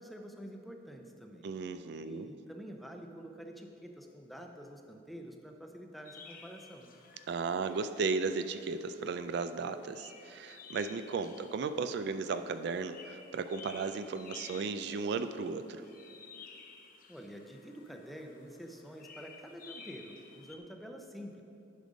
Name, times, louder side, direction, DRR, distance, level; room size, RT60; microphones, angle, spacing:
voice 1, 0.0-1.5 2.0-6.9 17.1-21.4, equal, ahead, 3 dB, 0.6 m, -48 dB
voice 2, 1.4-2.3 7.3-15.8, right 4 dB, 65° right, 10 dB, 0.3 m, -35 dB
sound 1, 6.0-20.6, left 5 dB, 50° left, 0.7 m, -54 dB
10.5 x 5.1 x 5.1 m, 2.6 s
head